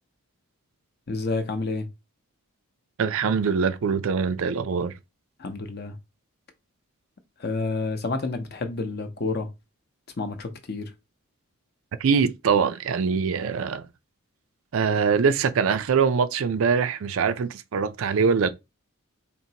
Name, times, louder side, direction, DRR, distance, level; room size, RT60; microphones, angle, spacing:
voice 1, 1.1-1.9 5.4-6.0 7.4-9.5 10.2-10.9, left 3 dB, 45° left, 0.7 m, -29 dB
voice 2, 3.0-4.9 12.0-13.9 14.7-18.5, right 6 dB, 65° right, 0.4 m, -23 dB
4.4 x 2.9 x 2.8 m
head